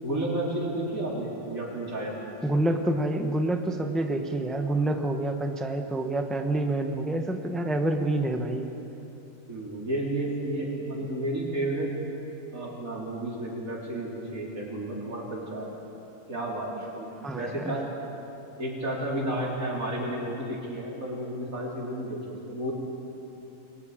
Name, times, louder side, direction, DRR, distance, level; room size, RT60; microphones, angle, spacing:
voice 1, 0.0-2.1 9.5-11.9 12.5-15.7 16.3-17.8 18.6-22.7, right 1 dB, 80° right, -4 dB, 4.4 m, -32 dB
voice 2, 2.4-8.7 17.2-17.8, right 1 dB, ahead, 4 dB, 1.0 m, -27 dB
29.0 x 22.0 x 5.1 m, 3.0 s
omnidirectional pair, 1.4 m